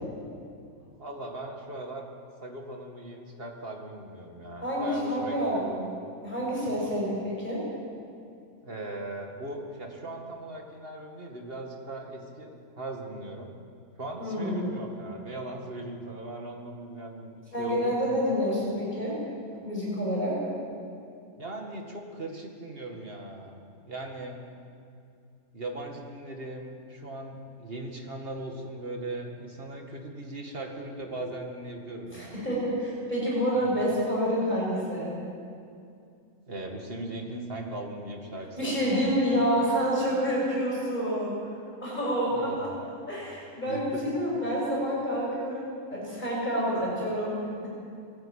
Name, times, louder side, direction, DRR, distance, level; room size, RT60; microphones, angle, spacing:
voice 1, 1.0-2.1 2.4-5.7 8.6-13.5 14.0-18.0 21.4-23.6 23.8-24.4 25.5-32.4 33.5-33.7 36.5-39.4 42.3-42.7 43.7-44.1, right 2 dB, 40° right, 2 dB, 2.2 m, -39 dB
voice 2, 4.6-5.8 6.2-7.6 14.2-14.6 17.5-19.2 19.6-20.4 32.1-35.2 38.6-41.4 41.8-42.7 43.1-47.7, equal, 30° left, -5 dB, 6.6 m, -28 dB
19.5 x 15.5 x 8.9 m, 2.5 s
omnidirectional pair, 1.5 m